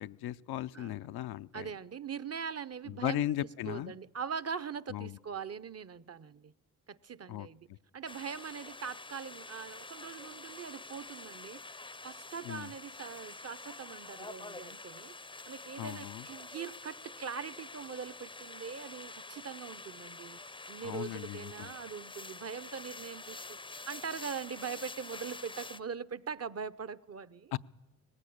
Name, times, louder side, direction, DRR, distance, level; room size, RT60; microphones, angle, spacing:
voice 1, 0.0-1.7 2.9-3.9 4.9-5.2 7.3-7.5 12.4-12.7 15.8-16.3 20.8-21.7 27.5-27.6, left 13 dB, 75° left, 0.6 m, -37 dB
voice 2, 1.5-6.5 6.9-7.7 7.9-11.6 12.0-20.4 20.7-27.6, right 6 dB, 40° right, 0.7 m, -42 dB
sound 1, 8.1-25.8, left 3 dB, 15° left, 0.6 m, -47 dB
19.0 x 16.5 x 8.7 m
supercardioid pair, 45°, 39 cm